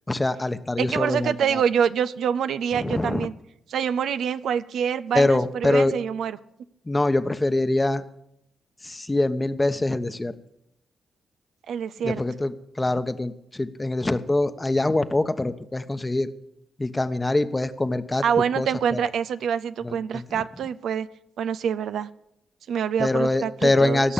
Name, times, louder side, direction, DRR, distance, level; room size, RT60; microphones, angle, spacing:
voice 1, 0.1-1.6 2.7-3.3 5.1-5.9 6.9-8.0 8.8-10.3 12.0-16.3 16.8-18.2 18.6-18.7 18.9-19.0 19.8-20.2 23.0-24.1, left 2 dB, 25° left, 1.0 m, -24 dB
voice 2, 0.8-3.3 3.7-6.4 11.7-12.2 18.2-21.1 21.4-22.1 22.7-24.1, right 8 dB, 75° right, 0.5 m, -26 dB
17.0 x 6.3 x 8.6 m
hypercardioid pair, 45°, 0 cm